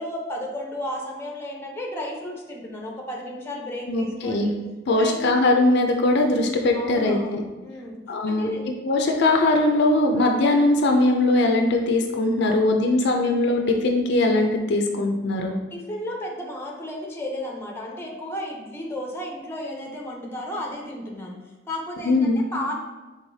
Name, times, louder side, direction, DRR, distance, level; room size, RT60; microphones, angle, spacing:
voice 1, 0.0-4.5 4.9-5.3 6.7-8.0 8.3-8.7 12.4-12.6 15.7-21.4 21.7-22.7, left 1 dB, 10° left, 0 dB, 0.6 m, -33 dB
voice 2, 3.9-4.5 4.9-7.4 8.1-8.5 8.8-15.6 22.0-22.4, left 2 dB, 55° left, 3 dB, 0.4 m, -20 dB
4.8 x 3.8 x 2.7 m, 1.1 s
head